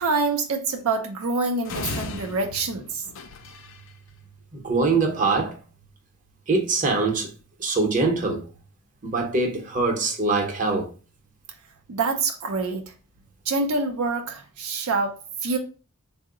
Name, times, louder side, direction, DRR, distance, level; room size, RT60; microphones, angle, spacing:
voice 1, 0.0-3.0 11.9-12.9 13.5-15.1 15.4-15.6, right 3 dB, 80° right, 0.5 m, -26 dB
sound 1, 1.6-3.9, left 4 dB, 60° left, 0.4 m, -35 dB
voice 2, 4.5-5.6 6.5-7.3 7.6-8.4 9.0-10.9, right 3 dB, 35° right, 0.7 m, -23 dB
3.6 x 2.0 x 3.6 m
head